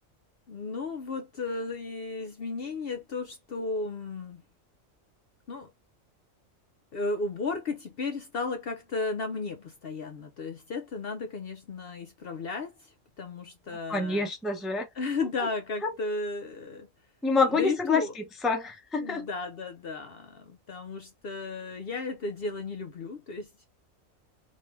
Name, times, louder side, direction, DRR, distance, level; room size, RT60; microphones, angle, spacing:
voice 1, 0.5-4.4 5.5-5.7 6.9-14.3 15.0-16.9 17.5-18.1 19.0-23.7, left 3 dB, 55° left, 0.7 m, -34 dB
voice 2, 13.9-14.9 15.4-15.5 15.8-15.9 17.2-19.3, left 3 dB, ahead, 0.6 m, -27 dB
3.2 x 2.6 x 3.3 m
omnidirectional pair, 1.4 m